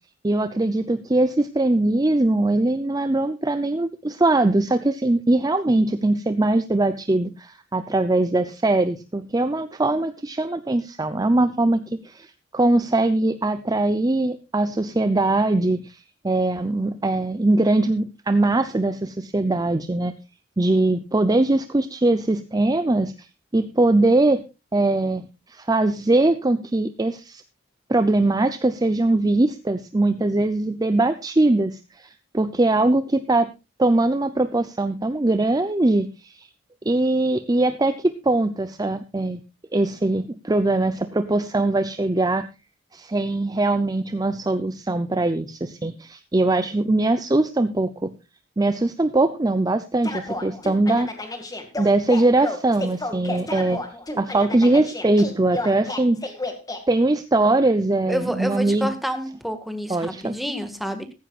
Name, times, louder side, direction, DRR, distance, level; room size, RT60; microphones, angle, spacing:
voice 1, 0.2-20.1 20.6-23.3 23.5-24.4 24.7-27.4 27.9-33.5 33.8-36.5 36.9-39.4 39.7-42.5 42.9-48.1 48.6-51.1 51.8-53.8 54.2-56.3 56.9-58.9 59.9-60.4, right 2 dB, 20° right, 11 dB, 0.6 m, -21 dB
sound 1, 50.0-56.8, left 2 dB, 20° left, 2.1 m, -31 dB
voice 2, 58.1-61.1, equal, ahead, 7 dB, 1.7 m, -29 dB
15.0 x 15.0 x 2.4 m, 0.26 s
head